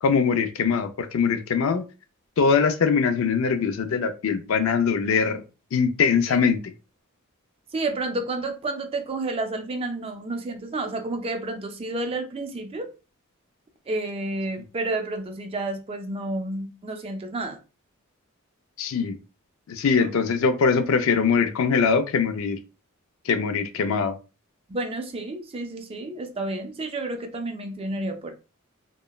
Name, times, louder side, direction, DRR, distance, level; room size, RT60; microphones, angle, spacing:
voice 1, 0.0-1.8 2.4-5.4 5.7-6.6 18.8-19.2 19.7-22.6 23.3-24.1, left 5 dB, 70° left, 8 dB, 0.4 m, -22 dB
voice 2, 7.7-12.9 13.9-17.6 24.7-28.3, right 2 dB, 25° right, 5 dB, 0.4 m, -30 dB
2.9 x 2.1 x 2.2 m, 0.31 s
head